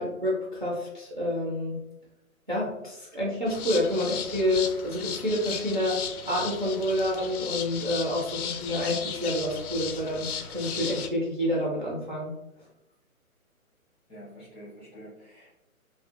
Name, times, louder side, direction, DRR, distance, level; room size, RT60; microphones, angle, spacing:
voice 1, 0.0-1.8 2.5-12.3, left 1 dB, 35° right, -6 dB, 0.4 m, -28 dB
sound 1, 3.5-11.1, left 7 dB, 85° left, 0.5 m, -36 dB
voice 2, 14.1-15.5, equal, 10° left, -13 dB, 0.6 m, -47 dB
2.6 x 2.3 x 2.3 m, 0.89 s
hypercardioid pair, 160°, 43 cm